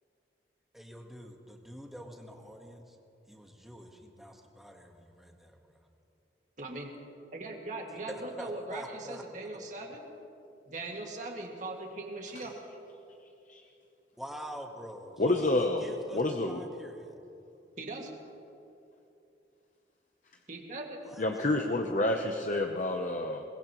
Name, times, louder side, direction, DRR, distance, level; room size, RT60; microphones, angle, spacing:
voice 1, 0.7-3.0 3.3-5.8 8.1-9.2 14.2-17.1 21.0-21.2, equal, ahead, 1 dB, 1.4 m, -45 dB
voice 2, 6.6-6.9 7.3-10.1 10.7-12.5 17.8-18.1 20.5-21.0, right 2 dB, 45° right, 0 dB, 2.1 m, -40 dB
voice 3, 15.2-15.9 16.1-16.6 21.2-23.4, left 2 dB, 45° left, 3 dB, 0.8 m, -28 dB
22.5 x 20.0 x 3.1 m, 2.7 s
head